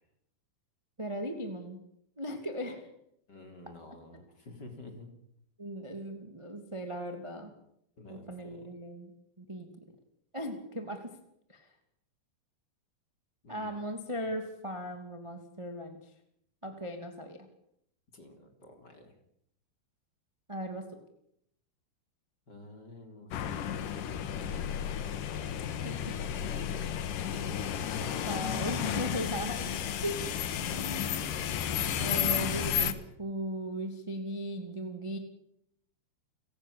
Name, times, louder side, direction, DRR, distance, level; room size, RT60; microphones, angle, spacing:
voice 1, 1.0-1.8 2.2-2.9 5.6-7.5 8.1-9.1 9.4-9.7 10.3-11.1 11.5-11.7 13.5-16.0 16.6-17.5 20.5-20.9 25.8-26.2 28.3-30.4 32.0-35.2, equal, 15° right, 5 dB, 1.2 m, -37 dB
voice 2, 3.3-5.1 8.0-8.7 13.4-13.8 18.1-19.1 22.5-23.3 23.7-25.0 26.2-27.7, left 2 dB, 25° left, 5 dB, 3.2 m, -50 dB
sound 1, 23.3-32.9, left 9 dB, 65° left, 2.3 m, -32 dB
30.0 x 17.5 x 8.6 m, 0.75 s
omnidirectional pair, 5.6 m